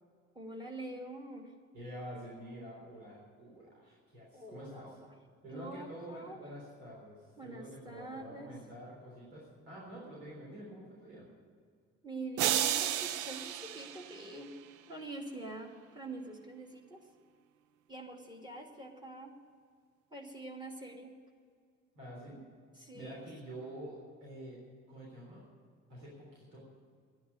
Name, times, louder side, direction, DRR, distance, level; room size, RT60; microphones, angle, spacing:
voice 1, 0.3-1.5 4.3-5.0 5.5-6.4 7.4-8.5 12.0-14.5 14.9-17.0 17.9-19.3 20.1-21.2 22.8-23.2, right 2 dB, 10° right, 2 dB, 2.6 m, -45 dB
voice 2, 1.7-5.0 5.4-11.3 21.9-22.4 22.9-24.6 24.9-25.4 25.9-26.7, right 1 dB, 75° right, -5 dB, 3.6 m, -47 dB
sound 1, 12.4-14.7, right 11 dB, 50° right, 0.7 m, -33 dB
11.5 x 9.9 x 9.5 m, 2.1 s
figure-of-eight pair, 50°, 38 cm